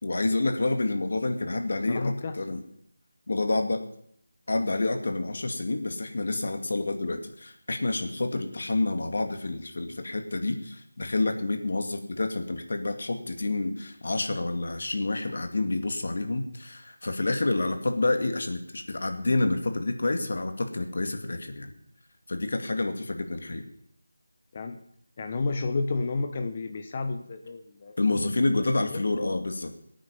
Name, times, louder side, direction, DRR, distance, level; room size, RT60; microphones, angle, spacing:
voice 1, 0.0-2.6 3.3-3.8 4.5-21.7 22.3-23.6 28.0-29.8, left 2 dB, 60° left, 6 dB, 2.3 m, -28 dB
voice 2, 1.9-2.3 24.5-24.8 25.2-27.9 28.9-29.0, left 3 dB, 30° left, 7 dB, 1.0 m, -31 dB
18.5 x 9.2 x 5.5 m, 0.70 s
figure-of-eight pair, 165°, 0 cm